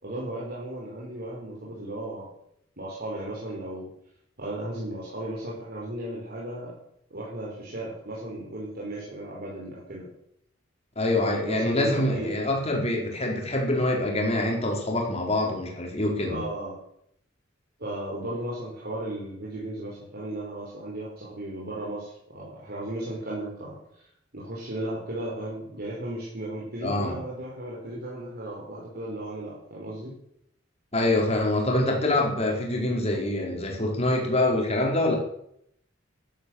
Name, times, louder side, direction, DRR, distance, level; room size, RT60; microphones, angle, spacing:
voice 1, 0.0-2.3 2.8-3.9 4.4-6.7 7.1-10.1 11.4-12.3 16.2-16.8 17.8-24.1 24.3-30.1, right 1 dB, 55° right, -5 dB, 5.3 m, -35 dB
voice 2, 11.0-16.4 26.8-27.1 30.9-35.2, left 1 dB, 35° left, 0 dB, 4.5 m, -25 dB
13.0 x 12.5 x 8.0 m, 0.73 s
head